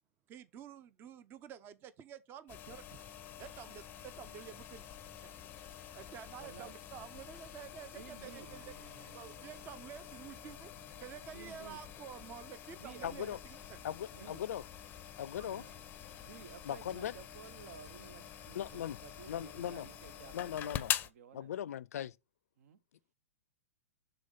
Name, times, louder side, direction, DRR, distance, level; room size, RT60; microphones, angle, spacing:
voice 1, 0.3-3.0 3.4-4.9 5.2-5.3 5.9-10.7 11.0-13.8 15.4-15.5, right 8 dB, 25° right, 0.5 m, -50 dB
sound 1, 2.5-21.1, left 11 dB, 25° left, 0.5 m, -46 dB
sound 2, 3.0-20.4, equal, 10° right, 1.1 m, -64 dB
voice 2, 6.4-6.8 7.9-8.5 11.3-11.8 12.7-13.4 14.1-14.4 15.4-15.7 16.2-21.5 22.6-22.8, right 7 dB, 70° right, 0.7 m, -54 dB
Acoustic guitar, 8.3-12.8, right 5 dB, 45° right, 1.4 m, -62 dB
voice 3, 13.0-13.4 13.8-14.6 15.2-15.6 16.6-17.1 18.5-19.0 19.3-19.9 20.3-20.9 21.3-22.2, left 10 dB, 75° left, 0.4 m, -39 dB
6.9 x 3.7 x 5.1 m
hypercardioid pair, 130°, 8 cm